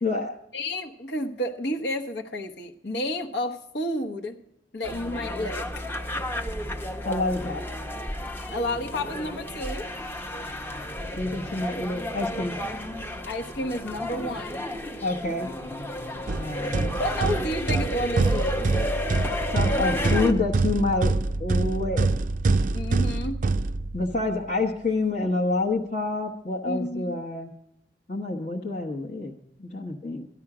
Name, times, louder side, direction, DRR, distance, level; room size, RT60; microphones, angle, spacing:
voice 1, 0.0-0.4 7.0-7.6 11.2-12.6 15.0-15.5 16.4-16.9 19.5-22.1 23.9-27.5 28.1-30.3, left 2 dB, 40° left, -1 dB, 1.0 m, -27 dB
voice 2, 0.5-4.4 4.7-5.7 8.5-9.9 13.3-14.7 17.0-18.7 22.7-23.4 26.7-27.2, left 1 dB, 65° left, 4 dB, 1.1 m, -31 dB
sound 1, 4.8-20.3, left 1 dB, 10° left, 0.7 m, -32 dB
sound 2, 16.3-24.3, right 3 dB, 45° right, 0.4 m, -25 dB
13.5 x 11.0 x 4.9 m, 0.80 s
head